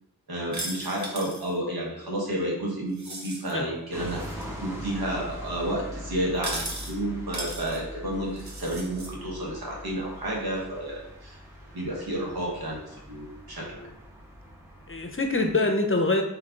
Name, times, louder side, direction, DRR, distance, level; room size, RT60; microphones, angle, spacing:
voice 1, 0.3-11.4 11.7-13.8, right 1 dB, 80° right, -3 dB, 1.3 m, -31 dB
sound 1, 0.5-1.5 2.9-3.5 4.1-4.4 6.4-6.9 7.3-7.8 8.4-9.1, right 2 dB, 50° right, 0.9 m, -37 dB
sound 2, 3.9-15.6, equal, 5° right, 1.1 m, -42 dB
voice 2, 14.9-16.2, left 2 dB, 35° left, 4 dB, 0.7 m, -25 dB
3.4 x 3.3 x 3.7 m, 0.83 s
wide cardioid pair, 50°, 36 cm